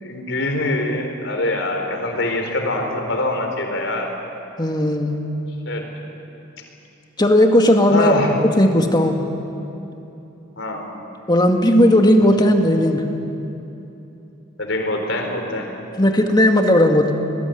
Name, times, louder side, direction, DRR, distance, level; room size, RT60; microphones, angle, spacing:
voice 1, 0.0-4.1 5.6-5.9 7.9-8.3 10.6-10.9 12.4-12.5 14.6-15.7, left 2 dB, 75° left, 3 dB, 4.3 m, -24 dB
voice 2, 4.6-5.2 7.2-8.1 8.6-9.2 11.3-13.1 16.0-17.1, left 1 dB, 25° left, 3 dB, 2.2 m, -15 dB
26.5 x 20.5 x 9.5 m, 2.9 s
head